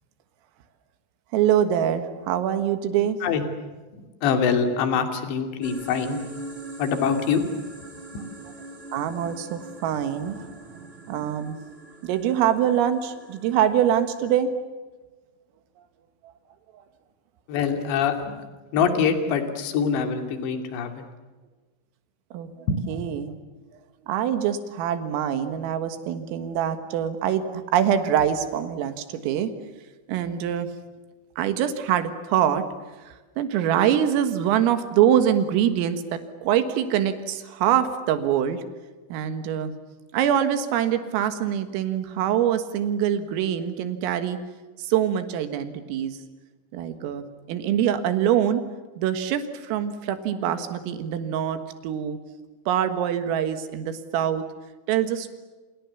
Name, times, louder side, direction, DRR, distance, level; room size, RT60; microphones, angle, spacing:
voice 1, 1.3-3.2 8.9-11.6 12.0-14.5 22.3-22.5 22.9-23.3 24.1-29.5 30.1-30.7 31.4-32.6 33.4-38.6 39.1-39.7 40.1-44.4 44.8-46.2 46.7-48.6 49.0-52.2 52.7-54.4 54.9-55.3, right 10 dB, 85° right, 9 dB, 4.3 m, -24 dB
voice 2, 3.9-6.2 6.8-7.5 8.1-8.2 17.5-18.4 18.7-21.0 22.7-22.8, left 6 dB, 60° left, 6 dB, 4.6 m, -24 dB
sound 1, 5.6-14.4, right 2 dB, 20° right, 1.9 m, -41 dB
29.5 x 26.5 x 7.1 m, 1.3 s
omnidirectional pair, 5.9 m